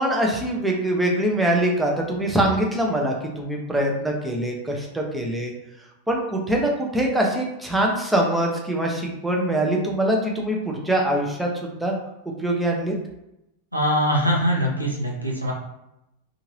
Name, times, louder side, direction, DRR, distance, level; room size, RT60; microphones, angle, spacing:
voice 1, 0.0-5.5 6.1-12.0 12.4-12.9, right 1 dB, 5° right, -1 dB, 0.6 m, -23 dB
voice 2, 13.7-15.5, equal, 85° right, -1 dB, 0.6 m, -22 dB
2.7 x 2.4 x 3.0 m, 0.86 s
figure-of-eight pair, 90°, 0 cm